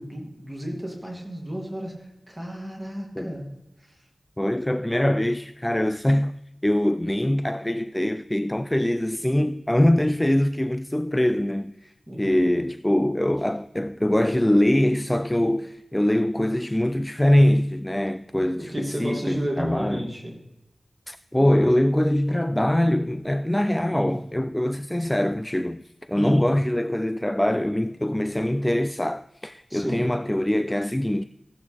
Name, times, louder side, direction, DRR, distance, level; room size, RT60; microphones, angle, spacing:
voice 1, 0.0-3.4 3.8-4.0 12.1-12.2 18.6-20.3 23.9-24.1 26.1-26.4 29.7-30.1, equal, 15° right, 2.6 m, -33 dB
voice 2, 4.4-6.3 6.6-20.1 21.1-31.2, left 1 dB, 15° left, 0.3 m, -23 dB
15.5 x 8.5 x 3.4 m
wide cardioid pair, 55°, 0 cm